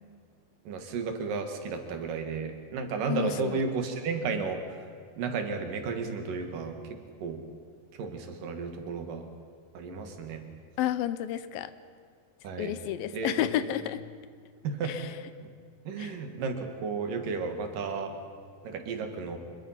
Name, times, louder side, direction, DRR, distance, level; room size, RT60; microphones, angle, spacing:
voice 1, 0.7-4.6 5.2-6.7 7.2-7.4 8.0-9.3 9.7-10.4 12.4-12.7 13.1-13.3 13.6-13.7 14.6-15.0 15.4-15.5 15.9-18.1 18.6-19.4, right 4 dB, 70° right, 5 dB, 3.3 m, -33 dB
voice 2, 3.1-3.6 10.8-11.7 12.6-14.0 14.8-15.1 16.0-16.2, left 11 dB, 80° left, 13 dB, 2.5 m, -31 dB
25.5 x 22.0 x 5.7 m, 2.1 s
omnidirectional pair, 4.2 m